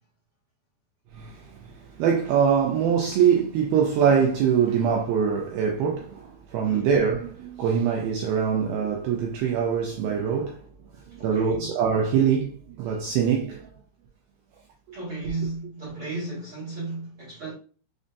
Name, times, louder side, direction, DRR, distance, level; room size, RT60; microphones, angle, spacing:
voice 1, 2.0-10.6 11.2-13.6, right 7 dB, 85° right, 2.2 m, -23 dB
voice 2, 11.2-11.7 14.9-17.5, right 3 dB, 60° right, 1.5 m, -34 dB
6.2 x 2.6 x 2.2 m
omnidirectional pair, 4.8 m